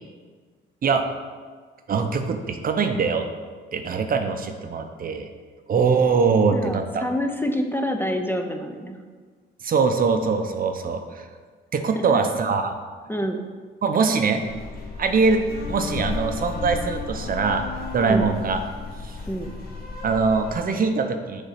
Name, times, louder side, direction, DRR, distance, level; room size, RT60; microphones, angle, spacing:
voice 1, 1.9-3.3 3.7-5.3 5.7-7.0 9.6-11.3 11.7-12.7 13.8-14.4 15.0-17.6 17.9-18.6 19.0-19.2 20.0-21.4, right 5 dB, 45° right, 6 dB, 0.7 m, -22 dB
voice 2, 6.3-9.0 11.9-12.2 13.1-13.4 18.0-18.3 19.3-19.5, equal, 10° left, 4 dB, 0.6 m, -27 dB
sound 1, 14.4-20.6, left 4 dB, 50° left, 1.3 m, -33 dB
6.7 x 3.7 x 5.7 m, 1.5 s
cardioid pair, 90°, 20 cm